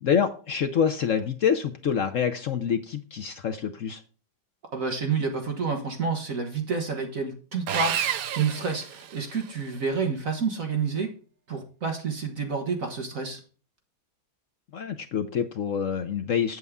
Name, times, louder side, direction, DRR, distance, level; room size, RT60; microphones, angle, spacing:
voice 1, 0.0-4.0 14.7-16.6, left 7 dB, 65° left, 6 dB, 0.8 m, -26 dB
voice 2, 4.7-11.1 11.5-13.4, right 5 dB, 45° right, 4 dB, 1.4 m, -29 dB
Sawing, 7.7-9.6, right 10 dB, 65° right, 0.9 m, -30 dB
8.2 x 7.9 x 3.6 m, 0.38 s
omnidirectional pair, 2.2 m